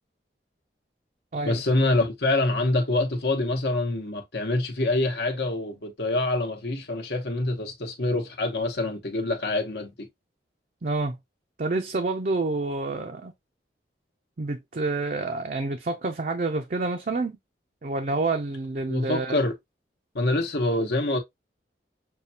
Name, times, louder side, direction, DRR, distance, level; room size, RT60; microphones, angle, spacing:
voice 1, 1.4-10.1 18.9-19.5 20.1-21.2, left 2 dB, 65° left, 1.0 m, -26 dB
voice 2, 10.8-11.2 11.6-13.3 14.4-17.4 17.8-19.4, right 3 dB, 45° right, 0.5 m, -28 dB
6.5 x 2.2 x 2.7 m
head